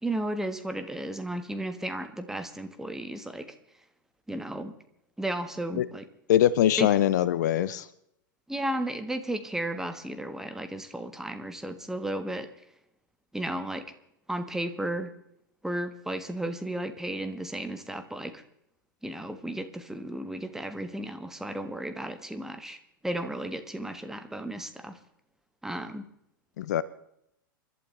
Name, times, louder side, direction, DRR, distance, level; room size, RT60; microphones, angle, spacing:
voice 1, 0.0-3.6 4.3-4.7 5.2-6.1 6.8-6.9 8.5-12.5 13.3-13.9 14.3-15.1 15.6-18.4 19.0-25.0 25.6-26.1, right 1 dB, 5° right, 8 dB, 1.5 m, -34 dB
voice 2, 6.3-7.9 26.6-26.8, left 11 dB, 55° left, 17 dB, 0.7 m, -22 dB
29.5 x 12.0 x 3.4 m, 0.78 s
figure-of-eight pair, 90°, 11 cm